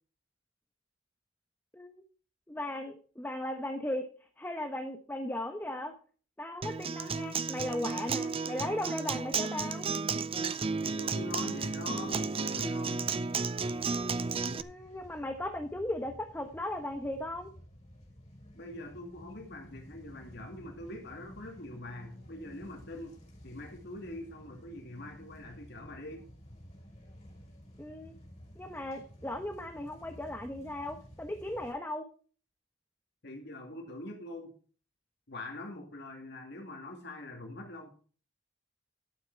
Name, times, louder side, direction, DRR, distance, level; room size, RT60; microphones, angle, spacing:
voice 1, 2.5-4.1 4.4-6.0 6.4-9.9 14.5-17.5 27.8-28.1 28.6-32.1, left 1 dB, 10° left, 5 dB, 1.1 m, -37 dB
Acoustic guitar, 6.6-14.6, right 4 dB, 30° right, 0.6 m, -33 dB
voice 2, 10.8-13.1 18.5-26.2 33.2-34.5 35.3-37.9, left 2 dB, 60° left, 1 dB, 2.4 m, -44 dB
sound 1, 13.5-31.7, equal, 35° left, 5.0 m, -53 dB
12.0 x 8.7 x 4.5 m, 0.41 s
head